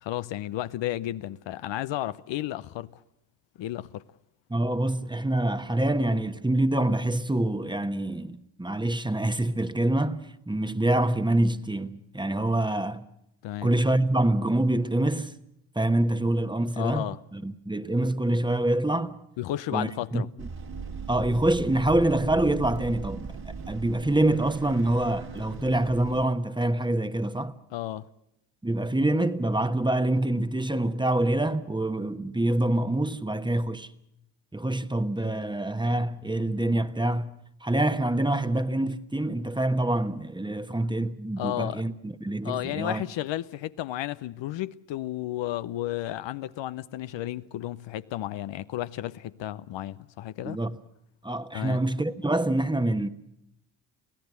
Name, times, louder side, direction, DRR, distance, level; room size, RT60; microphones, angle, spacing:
voice 1, 0.0-3.0 3.6-4.0 13.4-13.7 16.8-17.2 19.4-20.3 27.7-28.1 41.4-41.8 42.4-50.6 51.5-51.8, left 13 dB, 65° left, 0.7 m, -33 dB
voice 2, 4.5-13.1 13.6-15.3 15.7-19.2 19.7-20.5 21.1-27.5 28.6-33.9 34.5-37.3 37.6-43.0 50.4-50.8 51.2-53.1, right 1 dB, 10° right, 1.2 m, -26 dB
sound 1, 20.4-26.3, right 5 dB, 50° right, 2.4 m, -38 dB
25.0 x 16.0 x 8.2 m
supercardioid pair, 55°, 47 cm